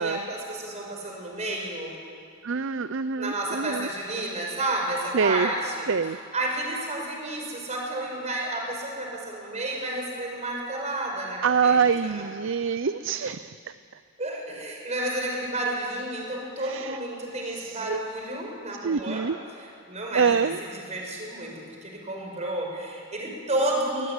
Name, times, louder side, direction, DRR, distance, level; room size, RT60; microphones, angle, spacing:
voice 1, 0.0-1.9 3.2-5.8 6.3-11.8 12.0-12.2 14.2-19.3 19.9-24.1, right 1 dB, 35° right, 0 dB, 5.8 m, -31 dB
voice 2, 2.4-3.9 5.1-5.5 5.9-6.2 11.4-13.7 16.7-17.0 17.6-18.0 18.8-19.4 20.1-20.6, right 6 dB, 65° right, 13 dB, 0.6 m, -25 dB
22.5 x 20.5 x 9.9 m, 2.4 s
head